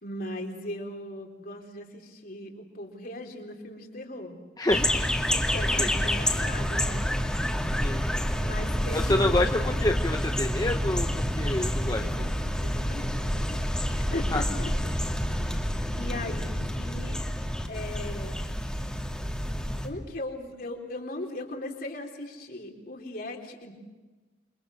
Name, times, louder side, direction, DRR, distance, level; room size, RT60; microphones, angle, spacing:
voice 1, 0.0-4.4 5.3-7.0 8.4-9.7 12.0-12.3 12.6-13.6 14.0-14.7 15.9-17.2 17.7-18.4 19.8-23.7, left 1 dB, 55° left, 2 dB, 4.1 m, -38 dB
voice 2, 4.6-5.3 5.8-5.9 7.8-8.1 8.9-12.1 14.3-14.4, left 1 dB, 20° left, 5 dB, 0.9 m, -28 dB
sound 1, 4.7-19.9, equal, 5° left, 2.6 m, -28 dB
29.0 x 24.5 x 6.6 m, 1.2 s
head